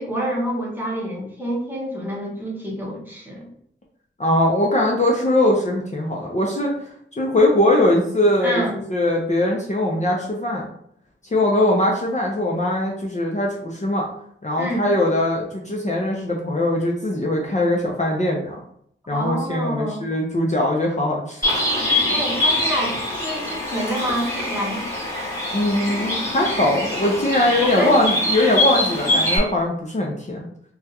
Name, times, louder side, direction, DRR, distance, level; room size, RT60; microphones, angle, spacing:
voice 1, 0.0-3.5 8.4-8.8 14.6-14.9 19.1-20.0 22.1-24.8 27.6-28.0 28.4-28.5, equal, 10° right, -3 dB, 1.0 m, -27 dB
voice 2, 4.2-6.7 7.2-10.7 11.3-14.1 14.4-18.6 19.1-21.5 21.9-22.0 25.5-30.5, left 1 dB, 35° left, -1 dB, 0.6 m, -21 dB
Bird, 21.4-29.4, left 1 dB, 15° left, 1.4 m, -24 dB
3.4 x 2.3 x 2.8 m, 0.67 s
wide cardioid pair, 70°, 21 cm